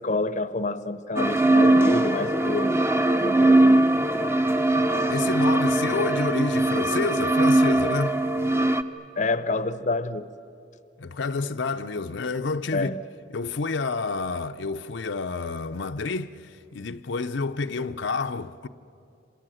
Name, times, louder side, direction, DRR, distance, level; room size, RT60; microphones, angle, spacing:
voice 1, 0.0-2.7 3.1-4.0 9.2-10.3 12.7-13.0, left 2 dB, 40° left, 0.7 m, -28 dB
sound 1, 1.2-8.8, right 1 dB, 15° right, 0.7 m, -21 dB
voice 2, 5.1-8.2 11.0-12.9 13.3-18.7, left 4 dB, 75° left, 0.7 m, -29 dB
27.5 x 27.0 x 7.7 m
head